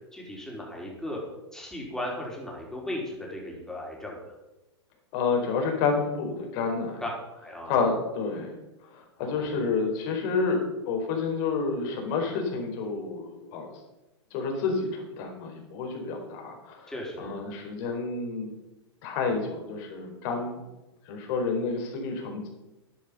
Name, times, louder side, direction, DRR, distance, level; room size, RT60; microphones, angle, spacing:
voice 1, 0.1-1.2 1.5-4.2 7.0-7.1 7.4-7.7 9.2-9.5 16.9-17.4, left 1 dB, 5° left, -2 dB, 4.8 m, -36 dB
voice 2, 5.1-7.0 7.6-8.5 8.9-13.7 14.3-18.5 19.0-20.6 21.1-22.5, left 4 dB, 45° left, 2 dB, 4.4 m, -29 dB
12.0 x 11.0 x 5.5 m, 1.0 s
hypercardioid pair, 105°, 15 cm